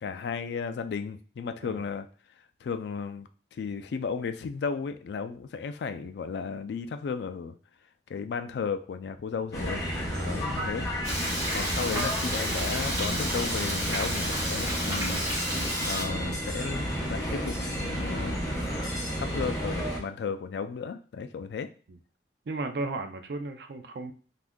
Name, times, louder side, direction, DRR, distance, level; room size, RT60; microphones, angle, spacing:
voice 1, 0.0-2.1 2.6-7.6 8.1-9.8 10.2-10.9 11.5-15.2 15.9-18.4 19.2-21.7, left 5 dB, 70° left, 9 dB, 0.3 m, -34 dB
sound 1, 9.5-20.0, equal, 20° left, 0.8 m, -32 dB
voice 2, 10.1-10.9 21.9-22.0 22.5-24.1, right 3 dB, 65° right, 7 dB, 0.4 m, -36 dB
Frying (food), 11.0-16.0, equal, 20° right, 1.1 m, -31 dB
2.6 x 2.4 x 3.5 m, 0.39 s
head